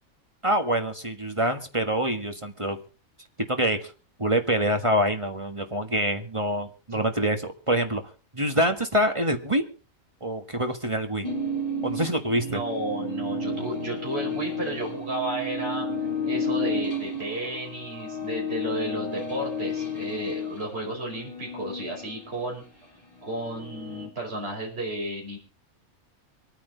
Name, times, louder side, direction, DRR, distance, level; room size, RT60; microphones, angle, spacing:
voice 1, 0.4-2.8 3.5-3.9 4.2-8.0 8.3-9.6 10.2-11.3 11.8-12.6, equal, 25° right, 6 dB, 1.7 m, -25 dB
sound 1, 11.2-22.6 23.0-24.1, left 2 dB, 25° left, 3.3 m, -32 dB
voice 2, 12.4-15.9 16.3-22.6 23.2-25.4, right 1 dB, 45° right, -2 dB, 5.7 m, -33 dB
25.5 x 9.7 x 3.9 m, 0.35 s
omnidirectional pair, 1.4 m